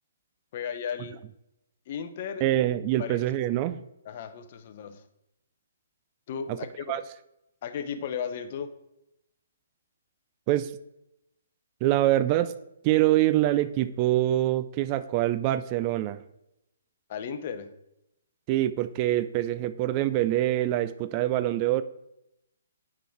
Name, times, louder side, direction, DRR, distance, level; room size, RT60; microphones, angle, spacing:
voice 1, 0.5-1.2 1.9-2.4 3.0-3.2 4.0-5.0 6.3-6.8 7.6-8.7 17.1-17.7, left 7 dB, 45° left, 9 dB, 0.7 m, -35 dB
voice 2, 2.4-3.8 6.5-6.6 6.9-7.0 10.5-10.7 11.8-12.5 12.8-16.2 18.5-21.8, right 14 dB, 30° right, 14 dB, 0.3 m, -25 dB
6.9 x 4.8 x 4.5 m, 0.86 s
hypercardioid pair, 135°, 0 cm